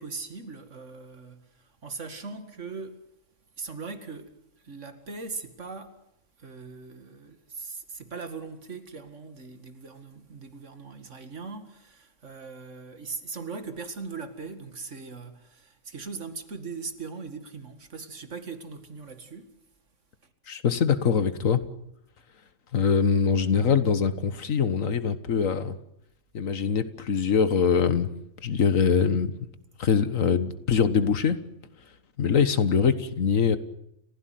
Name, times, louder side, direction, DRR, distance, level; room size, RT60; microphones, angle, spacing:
voice 1, 0.0-3.1 3.6-4.4 4.6-6.0 6.4-19.5, right 4 dB, 65° right, 2.4 m, -40 dB
voice 2, 20.5-21.6 22.7-25.8 26.3-28.1 28.4-29.3 29.8-31.4 32.2-33.6, left 6 dB, 90° left, 1.8 m, -23 dB
30.0 x 15.5 x 9.4 m
omnidirectional pair, 1.3 m